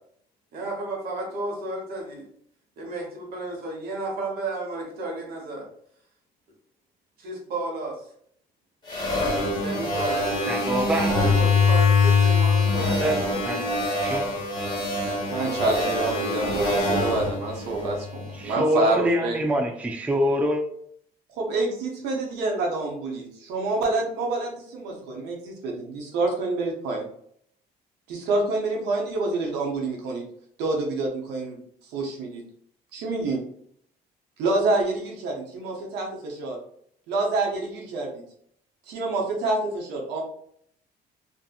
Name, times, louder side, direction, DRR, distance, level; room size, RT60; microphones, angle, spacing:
voice 1, 0.5-2.3 2.8-5.7 7.2-8.0 9.5-10.3 10.9-13.4, right 2 dB, 65° right, 0 dB, 1.1 m, -32 dB
sound 1, 8.9-18.3, left 3 dB, 25° left, 1.2 m, -23 dB
voice 2, 10.5-11.1 11.4-11.5 13.0-13.2 13.4-13.6 14.0-14.2 18.4-20.6, equal, 10° right, 4 dB, 0.3 m, -25 dB
voice 3, 15.3-19.4 21.4-27.0 28.1-30.2 30.6-31.6 31.9-32.4 32.9-33.4 34.4-36.6 37.1-38.2 38.9-40.2, right 2 dB, 90° right, -1 dB, 0.7 m, -27 dB
2.6 x 2.5 x 2.3 m, 0.66 s
cardioid pair, 110°, 17 cm